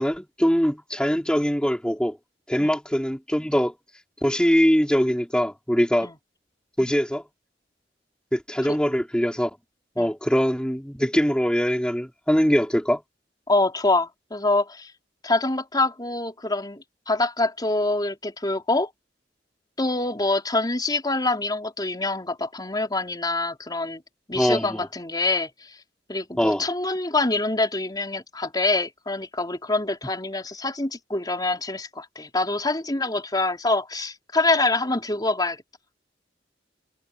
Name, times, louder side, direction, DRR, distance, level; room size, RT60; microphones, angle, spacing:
voice 1, 0.0-2.2 2.5-3.7 4.2-6.1 6.8-7.2 8.3-9.5 10.0-13.0 24.4-24.9 26.4-26.7, equal, 5° left, 3.5 m, -22 dB
voice 2, 13.5-14.9 15.2-18.9 19.8-24.0 24.3-25.5 26.1-35.6, left 2 dB, 25° left, 4.0 m, -25 dB
head